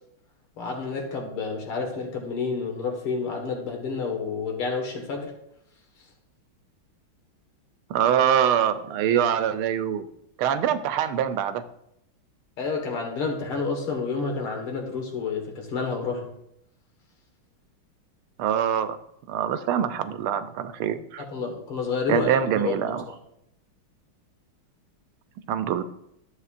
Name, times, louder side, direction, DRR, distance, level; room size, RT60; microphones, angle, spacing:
voice 1, 0.6-5.3 12.6-16.3 21.3-22.3 22.6-22.8 23.1-23.2, left 4 dB, 85° left, 2 dB, 2.5 m, -29 dB
voice 2, 7.9-10.1 10.4-11.6 18.4-19.0 19.3-21.2 22.1-23.0 25.5-25.8, right 9 dB, 85° right, 11 dB, 1.5 m, -24 dB
13.0 x 7.9 x 2.5 m, 0.78 s
omnidirectional pair, 2.3 m